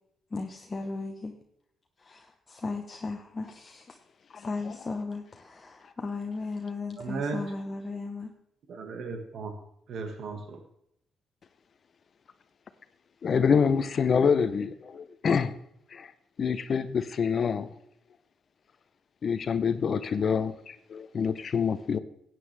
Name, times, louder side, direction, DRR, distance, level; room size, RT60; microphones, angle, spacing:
voice 1, 0.3-1.3 2.0-4.0 4.3-8.3, left 3 dB, 25° left, 1.0 m, -36 dB
voice 2, 7.0-7.4 8.7-9.5 9.9-10.6, right 4 dB, 65° right, 1.6 m, -35 dB
voice 3, 13.2-15.5 15.9-16.1 16.4-17.7 19.2-22.0, left 6 dB, 45° left, 0.7 m, -26 dB
15.0 x 9.3 x 3.4 m
cardioid pair, 105°, 0 cm